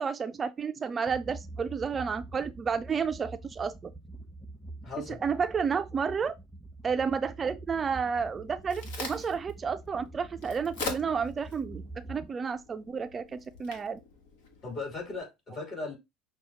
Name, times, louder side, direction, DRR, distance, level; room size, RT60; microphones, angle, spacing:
voice 1, 0.0-3.9 5.1-6.4 6.8-11.8 12.1-14.0, right 6 dB, 30° right, 0.3 m, -31 dB
sound 1, 1.1-12.3, right 2 dB, ahead, 0.8 m, -46 dB
voice 2, 4.8-5.2 14.6-16.0, left 3 dB, 45° left, 3.0 m, -37 dB
Crack, 8.3-15.2, left 4 dB, 75° left, 1.2 m, -43 dB
6.1 x 2.2 x 2.9 m
hypercardioid pair, 80°, 0 cm